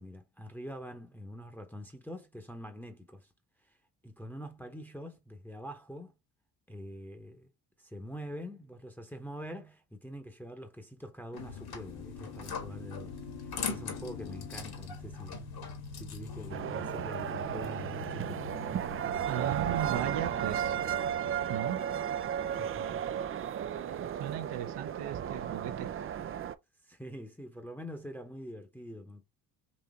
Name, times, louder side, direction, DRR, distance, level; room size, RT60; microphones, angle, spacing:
voice 1, 0.0-3.3 3.6-3.8 4.0-6.1 6.7-7.5 7.8-15.5 15.9-18.4 22.4-23.0 23.8-24.0 26.8-29.2, equal, 5° left, 0.9 m, -45 dB
sound 1, 11.3-23.6, left 5 dB, 80° left, 1.1 m, -45 dB
sound 2, 11.4-16.5, left 5 dB, 55° left, 1.6 m, -42 dB
sound 3, 16.5-26.5, right 9 dB, 30° right, 0.4 m, -34 dB
voice 2, 19.3-20.8 21.5-21.8 24.2-25.9, right 11 dB, 60° right, 0.8 m, -36 dB
4.2 x 2.8 x 3.5 m
hypercardioid pair, 55°, 46 cm